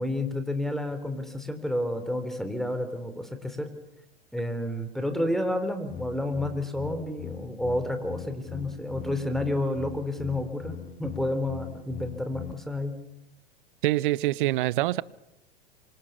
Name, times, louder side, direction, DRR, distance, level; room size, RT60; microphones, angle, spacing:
voice 1, 0.0-3.7 4.3-13.0, left 1 dB, ahead, 3.7 m, -30 dB
sound 1, 5.9-12.5, left 8 dB, 30° left, 2.5 m, -41 dB
voice 2, 13.8-15.0, right 17 dB, 55° right, 0.9 m, -25 dB
27.0 x 25.5 x 6.9 m
hypercardioid pair, 100°, 30 cm